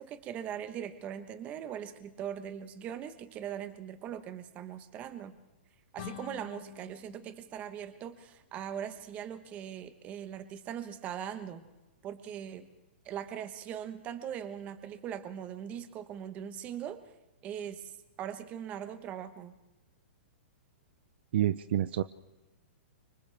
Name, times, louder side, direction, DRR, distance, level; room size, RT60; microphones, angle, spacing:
voice 1, 0.0-5.4 5.9-11.7 12.0-12.6 13.0-17.0 17.4-17.9 18.2-19.5, right 9 dB, 20° right, 11 dB, 1.2 m, -40 dB
sound 1, 5.9-8.7, left 10 dB, 45° left, 1.5 m, -48 dB
voice 2, 21.3-22.0, right 12 dB, 55° right, 14 dB, 0.6 m, -28 dB
30.0 x 25.0 x 3.5 m, 1.1 s
hypercardioid pair, 165°, 7 cm